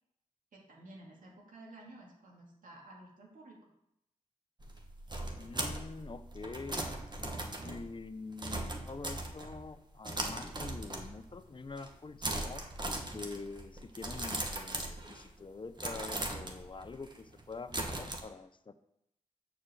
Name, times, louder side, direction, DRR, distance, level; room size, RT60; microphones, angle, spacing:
voice 1, 0.5-3.7, right 1 dB, 80° right, -2 dB, 2.2 m, -53 dB
sound 1, 4.6-9.7 10.0-11.4 11.7-12.0 12.2-15.4 15.8-18.2, right 2 dB, 30° right, 1.3 m, -39 dB
voice 2, 5.4-6.9 7.1-12.7 13.1-18.7, left 4 dB, 35° left, 11 dB, 0.6 m, -46 dB
6.7 x 4.5 x 6.8 m, 0.80 s
cardioid pair, 60°, 14 cm